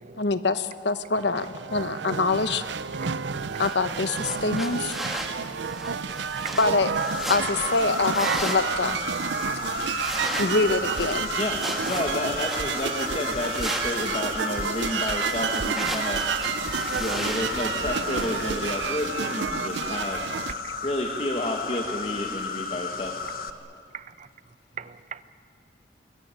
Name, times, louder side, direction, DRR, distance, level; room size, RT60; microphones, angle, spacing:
voice 1, 0.2-2.6 3.6-5.0 6.6-6.9 7.3-9.0 10.4-11.3 15.0-15.1, left 3 dB, 65° left, 11 dB, 1.1 m, -25 dB
sound 1, 1.2-20.5, right 6 dB, 75° right, 0.6 m, -30 dB
sound 2, 3.4-18.3, right 1 dB, ahead, 1.9 m, -37 dB
Insect, 7.0-23.5, left 5 dB, 50° left, 1.2 m, -34 dB
voice 2, 11.3-16.2 17.0-20.2 20.8-23.1, left 1 dB, 35° left, 1 dB, 1.7 m, -30 dB
voice 3, 23.9-24.3 24.8-25.2, right 6 dB, 40° right, 13 dB, 0.8 m, -41 dB
26.0 x 21.5 x 9.2 m, 2.3 s
head